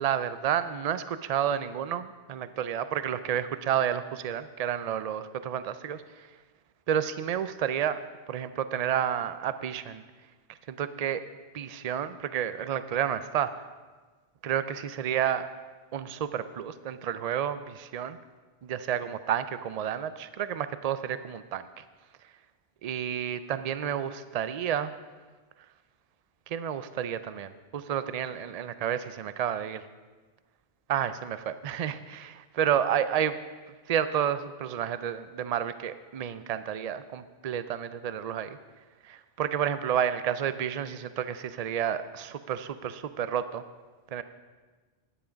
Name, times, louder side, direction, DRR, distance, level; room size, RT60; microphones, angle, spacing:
voice 1, 0.0-6.0 6.9-8.0 8.3-10.0 10.7-11.2 11.5-13.5 14.4-15.5 15.9-18.2 18.6-21.7 22.8-24.9 26.5-29.8 30.9-33.4 33.9-38.6 39.1-43.6 44.1-44.2, right 9 dB, 50° right, 12 dB, 0.5 m, -30 dB
10.0 x 9.5 x 5.1 m, 1.3 s
omnidirectional pair, 1.1 m